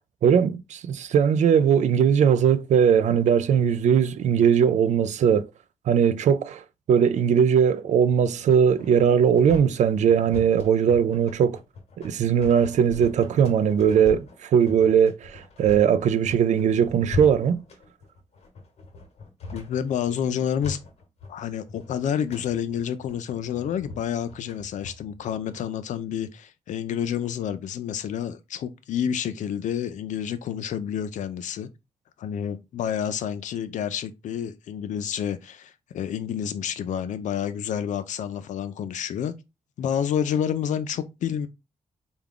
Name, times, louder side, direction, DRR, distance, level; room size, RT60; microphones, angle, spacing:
voice 1, 0.2-5.5 5.9-11.6 12.0-17.6, right 8 dB, 75° right, 0.4 m, -20 dB
sound 1, 8.2-25.7, left 3 dB, 60° left, 1.0 m, -40 dB
voice 2, 19.5-20.8 21.3-31.7 32.2-39.3 39.8-41.5, left 9 dB, 85° left, 0.4 m, -29 dB
3.5 x 2.3 x 3.5 m
cardioid pair, 100°, 12 cm